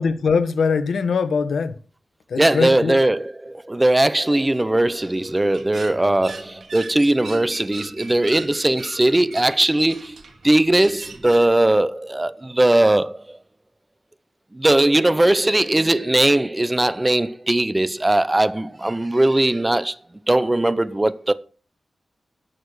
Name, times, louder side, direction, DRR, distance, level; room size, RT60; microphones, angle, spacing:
voice 1, 0.0-1.7 2.3-3.0, left 5 dB, 85° left, 1.3 m, -21 dB
voice 2, 2.4-13.2 14.5-19.9 20.3-21.3, right 1 dB, 15° right, 0.6 m, -19 dB
sound 1, 4.9-11.5, right 4 dB, 65° right, 2.2 m, -40 dB
12.0 x 6.8 x 6.2 m
wide cardioid pair, 130°, 0 cm